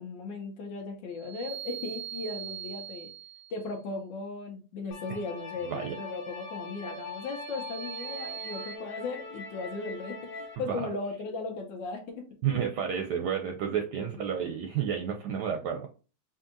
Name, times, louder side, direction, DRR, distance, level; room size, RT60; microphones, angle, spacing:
voice 1, 0.0-3.1 3.5-12.2 14.0-14.1, left 3 dB, 75° left, 2 dB, 1.4 m, -37 dB
sound 1, 1.1-3.7 6.7-8.8, right 11 dB, 90° right, 1.4 m, -42 dB
sound 2, 4.9-10.6, left 3 dB, 50° left, 1.4 m, -42 dB
voice 2, 5.6-5.9 10.7-10.9 12.4-15.9, right 8 dB, 70° right, 4 dB, 1.0 m, -31 dB
5.1 x 2.7 x 2.6 m, 0.35 s
omnidirectional pair, 2.1 m